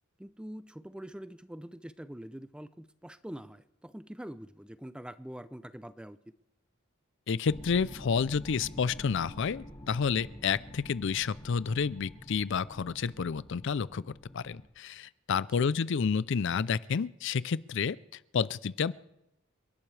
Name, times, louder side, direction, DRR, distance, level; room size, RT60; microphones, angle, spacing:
voice 1, 0.2-6.2 15.6-15.7, equal, 5° right, 14 dB, 0.4 m, -44 dB
voice 2, 7.3-14.0 14.3-18.0 18.3-18.9, left 6 dB, 60° left, 19 dB, 0.4 m, -30 dB
sound 1, 7.4-14.7, equal, 20° left, 1.6 m, -48 dB
29.5 x 11.5 x 3.3 m, 0.90 s
head